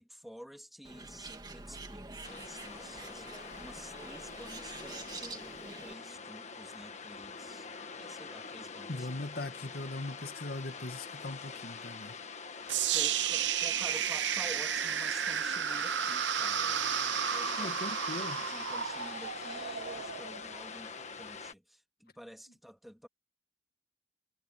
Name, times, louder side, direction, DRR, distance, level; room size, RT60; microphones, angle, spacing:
voice 1, 0.0-7.7 8.0-9.1 12.9-16.8 17.2-23.1, equal, ahead, 2.7 m, -50 dB
Bird, 0.8-5.9, right 3 dB, 25° right, 2.4 m, -46 dB
sound 1, 2.2-21.5, left 5 dB, 40° left, 1.6 m, -44 dB
voice 2, 8.9-12.1 17.6-18.4, left 2 dB, 60° left, 1.8 m, -40 dB
sound 2, 12.7-20.7, right 9 dB, 85° right, 0.9 m, -32 dB
head